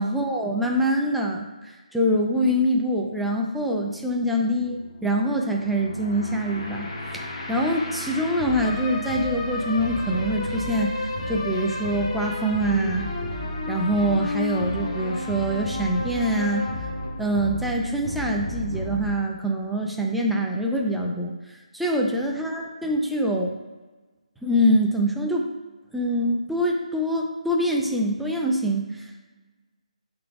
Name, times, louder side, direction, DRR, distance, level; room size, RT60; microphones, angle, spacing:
voice 1, 0.0-13.1 13.7-16.7 17.2-23.5 24.4-25.5 25.9-29.2, equal, ahead, -1 dB, 0.5 m, -25 dB
sound 1, 3.9-19.1, left 2 dB, 45° left, 1.1 m, -32 dB
11.0 x 3.9 x 2.3 m, 1.2 s
figure-of-eight pair, 150°, 4 cm